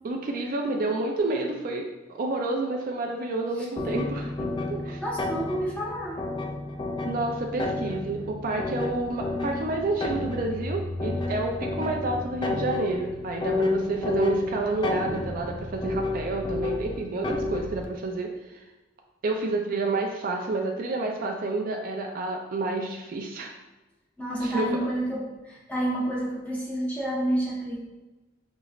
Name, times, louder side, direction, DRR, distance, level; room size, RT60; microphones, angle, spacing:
voice 1, 0.0-4.3 4.7-5.0 7.0-18.6 19.2-23.5 24.4-24.8, right 2 dB, 45° right, 2 dB, 0.4 m, -29 dB
sound 1, 3.8-17.9, left 2 dB, 25° left, 0.3 m, -31 dB
voice 2, 5.0-6.2 24.2-27.7, right 1 dB, 10° left, -6 dB, 0.9 m, -29 dB
5.2 x 3.0 x 2.4 m, 1.1 s
head